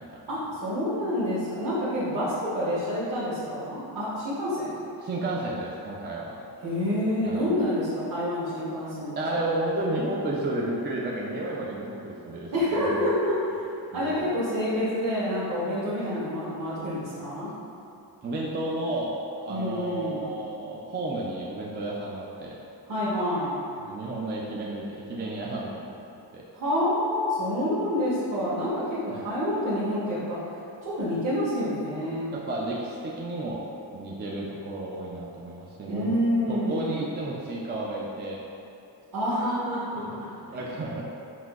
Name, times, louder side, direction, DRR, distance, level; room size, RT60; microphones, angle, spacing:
voice 1, 0.3-4.8 6.6-9.4 12.5-13.3 13.9-17.5 19.5-20.2 22.9-23.5 26.5-30.4 30.8-32.3 35.9-37.0 39.1-40.6, equal, 45° right, -10 dB, 1.0 m, -28 dB
voice 2, 5.0-6.5 7.3-7.5 9.2-13.1 13.9-14.3 18.2-19.1 19.4-22.6 23.8-25.9 26.3-26.4 29.1-29.3 32.3-36.1 36.5-38.4 40.5-41.0, right 2 dB, 25° right, -4 dB, 0.4 m, -32 dB
5.9 x 2.6 x 2.3 m, 2.7 s
cardioid pair, 105°, 42 cm